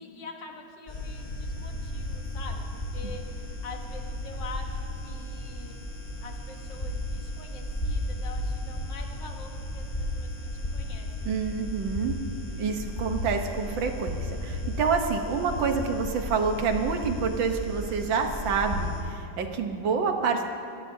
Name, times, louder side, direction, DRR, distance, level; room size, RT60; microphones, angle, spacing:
voice 1, 0.0-5.8 6.2-11.3, left 4 dB, 65° left, 2 dB, 1.9 m, -45 dB
sound 1, 0.9-19.0, left 1 dB, 25° left, 3.6 m, -34 dB
voice 2, 11.2-12.2 12.6-20.5, right 5 dB, 75° right, 5 dB, 1.8 m, -28 dB
25.0 x 17.5 x 2.7 m, 2.6 s
omnidirectional pair, 2.1 m